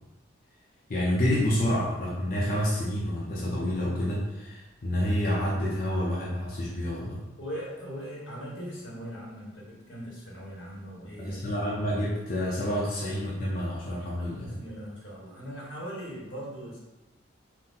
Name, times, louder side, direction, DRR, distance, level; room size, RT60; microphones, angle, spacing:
voice 1, 0.9-7.2 11.2-14.5, equal, 45° left, -6 dB, 0.6 m, -28 dB
voice 2, 7.4-11.4 14.1-16.8, equal, 80° left, -4 dB, 1.3 m, -40 dB
4.3 x 2.1 x 3.8 m, 1.0 s
head